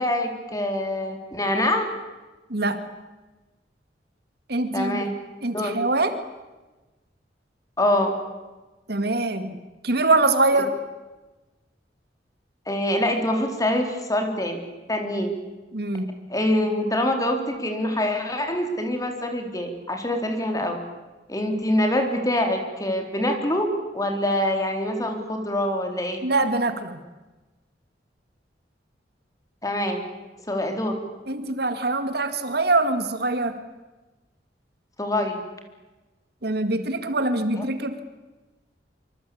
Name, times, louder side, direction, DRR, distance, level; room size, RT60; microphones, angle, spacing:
voice 1, 0.0-1.9 4.7-5.1 5.5-5.7 7.8-8.1 12.7-14.6 14.9-15.3 16.3-20.8 21.3-23.7 23.9-26.2 29.6-30.0 30.5-31.0 35.0-35.4 37.6-37.7, left 1 dB, 20° left, 4 dB, 4.0 m, -25 dB
voice 2, 2.5-2.8 4.5-5.0 5.4-6.2 8.9-9.6 9.8-10.7 15.7-16.1 26.2-27.0 31.3-33.6 36.4-38.0, right 2 dB, 60° right, 10 dB, 2.1 m, -23 dB
25.5 x 25.5 x 8.7 m, 1.2 s
head